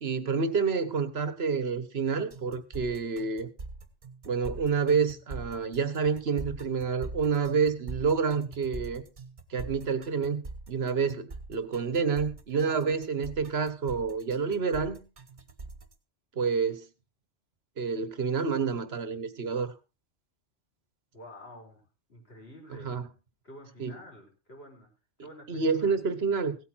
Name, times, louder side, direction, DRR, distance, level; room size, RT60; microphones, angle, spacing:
voice 1, 0.0-3.5 4.2-9.0 9.5-10.4 10.7-15.0 16.4-16.9 17.8-19.7 22.8-23.1 23.8-24.0 25.5-26.6, right 5 dB, 60° right, 14 dB, 1.4 m, -28 dB
sound 1, 2.3-15.9, right 3 dB, 40° right, 1.6 m, -43 dB
voice 2, 21.1-23.0 23.4-24.9 25.2-25.9, equal, 55° left, 1 dB, 4.5 m, -49 dB
16.5 x 8.6 x 4.4 m, 0.30 s
omnidirectional pair, 1.2 m